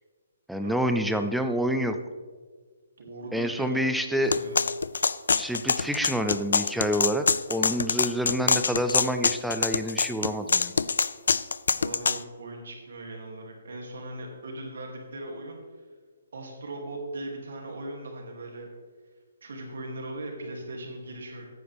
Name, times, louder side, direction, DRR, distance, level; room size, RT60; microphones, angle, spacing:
voice 1, 0.5-2.0 3.3-4.3 5.4-10.7, equal, ahead, 6 dB, 0.4 m, -27 dB
voice 2, 3.0-4.7 11.8-15.6 16.3-18.7 19.4-21.5, right 2 dB, 70° right, 1 dB, 2.6 m, -39 dB
sound 1, 4.3-12.2, left 5 dB, 80° left, 0.4 m, -25 dB
14.5 x 9.4 x 3.5 m, 1.5 s
hypercardioid pair, 170°, 0 cm